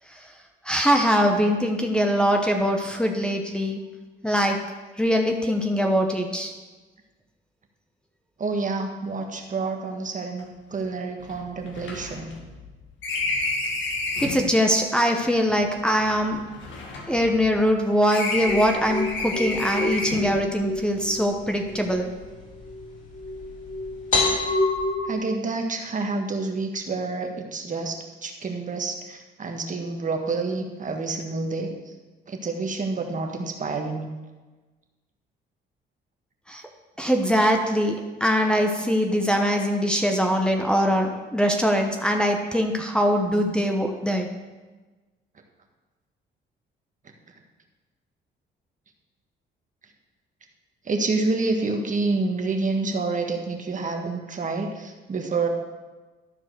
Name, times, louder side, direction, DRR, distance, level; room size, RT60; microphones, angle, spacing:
voice 1, 0.6-3.8 4.2-4.6 5.0-6.5 14.2-16.5 17.1-22.1 36.5-36.6 37.0-44.3, equal, 5° left, 2 dB, 1.0 m, -22 dB
voice 2, 8.4-10.4 10.7-12.3 25.1-31.7 32.3-34.1 50.9-55.5, right 3 dB, 40° right, 3 dB, 1.4 m, -28 dB
sound 1, 10.4-10.5 10.7-10.8 11.2-14.5 15.3-17.8 18.1-20.4, left 2 dB, 70° left, 1.9 m, -31 dB
sound 2, 18.4-25.0, left 2 dB, 40° left, 3.4 m, -28 dB
13.0 x 4.6 x 6.2 m, 1.2 s
cardioid pair, 90°, 20 cm